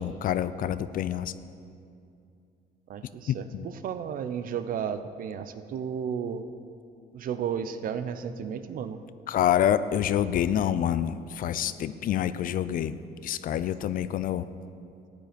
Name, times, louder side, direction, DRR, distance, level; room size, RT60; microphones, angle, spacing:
voice 1, 0.0-1.3 3.3-3.7 9.3-13.0 13.2-14.5, left 10 dB, 55° left, 14 dB, 0.5 m, -27 dB
voice 2, 2.9-6.4 7.1-9.0, right 7 dB, 55° right, 11 dB, 0.7 m, -33 dB
13.5 x 9.2 x 5.2 m, 2.5 s
cardioid pair, 110°, 17 cm